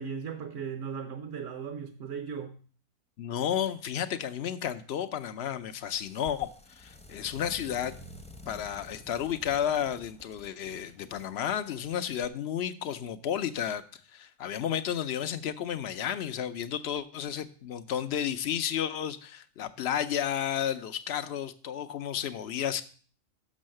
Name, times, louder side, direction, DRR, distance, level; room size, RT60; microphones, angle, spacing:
voice 1, 0.0-2.6, right 6 dB, 55° right, 6 dB, 1.0 m, -37 dB
voice 2, 3.2-8.0 8.5-22.8, left 9 dB, 65° left, 10 dB, 0.6 m, -32 dB
sound 1, 5.8-12.2, left 1 dB, 5° left, 0.6 m, -50 dB
6.4 x 6.2 x 7.5 m, 0.43 s
omnidirectional pair, 1.7 m